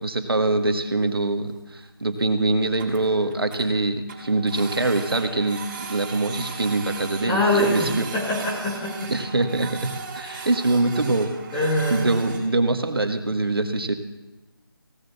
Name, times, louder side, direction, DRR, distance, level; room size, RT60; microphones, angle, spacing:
voice 1, 0.0-7.9 9.1-11.3 11.9-13.9, right 2 dB, 75° right, 6 dB, 1.7 m, -24 dB
Printer, 0.8-1.1 1.6-1.7 1.9-2.0 2.3-2.4 2.6-3.6 4.1-12.4, right 5 dB, 25° right, 3.9 m, -37 dB
voice 2, 7.3-9.1 10.2-10.5 11.5-12.1, left 1 dB, 5° left, -4 dB, 0.4 m, -24 dB
16.5 x 7.8 x 7.1 m, 1.1 s
figure-of-eight pair, 160°, 13 cm